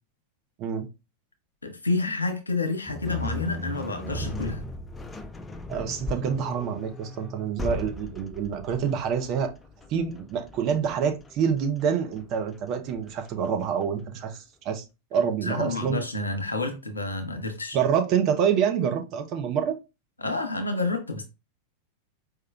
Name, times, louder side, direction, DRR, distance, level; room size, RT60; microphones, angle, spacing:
voice 1, 1.6-4.6 15.4-17.8 20.2-21.2, left 3 dB, 80° left, 0.8 m, -29 dB
sound 1, 2.9-14.0, left 2 dB, 15° left, 0.4 m, -37 dB
voice 2, 5.7-9.5 9.9-14.8 15.1-16.0 17.7-19.8, right 7 dB, 40° right, 0.7 m, -27 dB
4.7 x 2.9 x 2.3 m
figure-of-eight pair, 90°, 0 cm